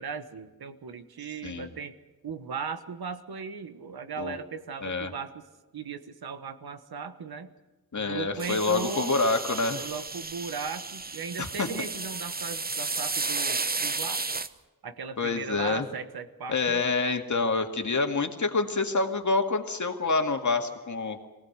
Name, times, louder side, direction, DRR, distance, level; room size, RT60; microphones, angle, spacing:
voice 1, 0.0-2.0 2.2-5.4 5.7-7.5 8.0-9.1 9.7-14.2 14.8-16.8, right 5 dB, 90° right, 10 dB, 1.3 m, -37 dB
voice 2, 4.8-5.1 7.9-9.8 11.4-11.7 15.2-15.9 16.5-21.3, left 3 dB, 55° left, 5 dB, 2.2 m, -27 dB
sound 1, 8.4-14.5, right 3 dB, 25° right, 0.9 m, -33 dB
23.5 x 18.0 x 8.1 m, 1.2 s
wide cardioid pair, 80°, 36 cm